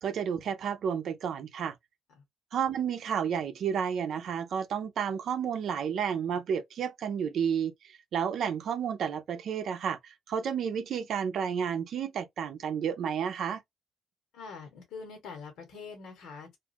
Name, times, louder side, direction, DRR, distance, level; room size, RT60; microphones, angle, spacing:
voice 1, 0.0-1.8 2.5-13.6, right 7 dB, 70° right, 0.5 m, -31 dB
voice 2, 14.3-16.6, left 5 dB, 80° left, 1.3 m, -44 dB
2.5 x 2.4 x 2.6 m
cardioid pair, 90°, 0 cm